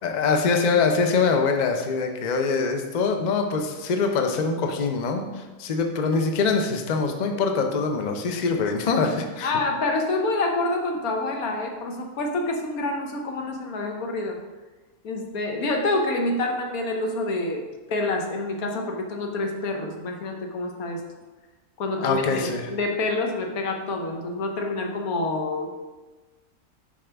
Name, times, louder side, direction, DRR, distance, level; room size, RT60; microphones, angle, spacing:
voice 1, 0.0-9.5 22.0-22.7, left 4 dB, 55° left, 4 dB, 0.5 m, -24 dB
voice 2, 9.4-14.4 15.0-21.0 21.8-25.7, left 2 dB, 75° left, 3 dB, 1.3 m, -27 dB
7.2 x 5.1 x 3.4 m, 1.2 s
omnidirectional pair, 1.5 m